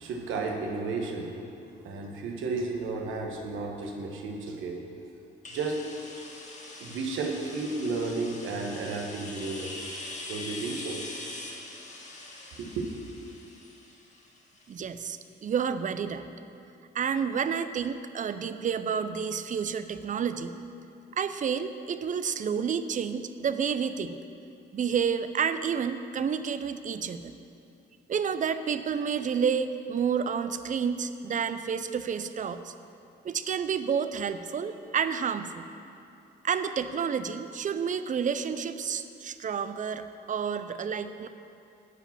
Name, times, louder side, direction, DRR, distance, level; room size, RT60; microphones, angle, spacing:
voice 1, 0.0-1.4 1.7-4.8 5.5-5.8 6.2-6.3 6.8-9.7 10.3-11.0 12.6-13.0, right 3 dB, 80° right, 2 dB, 1.2 m, -33 dB
sound 1, 5.4-15.1, left 2 dB, 35° left, 1.5 m, -43 dB
voice 2, 14.7-16.3 16.9-20.6 21.1-24.2 24.7-27.3 28.1-32.7 33.2-35.7 36.4-41.3, right 7 dB, 40° right, 11 dB, 0.5 m, -30 dB
10.0 x 5.0 x 7.2 m, 2.7 s
cardioid pair, 90°, 20 cm